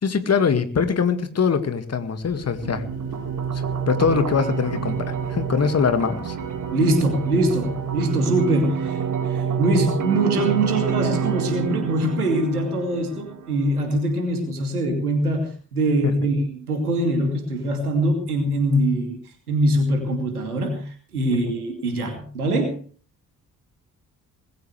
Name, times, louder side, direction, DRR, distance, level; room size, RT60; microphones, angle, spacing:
voice 1, 0.0-2.8 3.5-6.4 16.0-16.1 21.3-21.4, left 6 dB, 35° left, 9 dB, 2.1 m, -23 dB
sound 1, 2.2-8.0, left 2 dB, 65° left, 4.6 m, -42 dB
sound 2, 2.6-13.6, right 7 dB, 45° right, 2.1 m, -28 dB
voice 2, 6.7-19.2 19.5-22.8, right 1 dB, 80° right, 5 dB, 2.7 m, -23 dB
20.0 x 16.5 x 3.4 m, 0.43 s
figure-of-eight pair, 40°, 44 cm